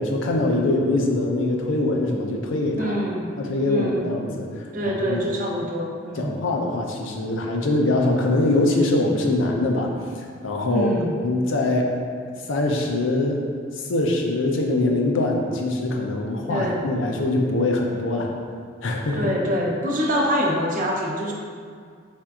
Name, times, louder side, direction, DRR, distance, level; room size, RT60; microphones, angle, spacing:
voice 1, 0.0-3.0 3.4-5.2 6.2-9.9 10.4-10.9 11.2-11.9 12.5-13.4 13.7-18.3 18.8-19.3, left 2 dB, 75° left, 1 dB, 0.5 m, -23 dB
voice 2, 2.8-3.3 3.7-4.0 4.7-6.3 10.7-11.2 16.5-16.8 19.1-21.3, equal, 45° right, -1 dB, 0.5 m, -25 dB
4.4 x 4.2 x 2.4 m, 2.1 s
head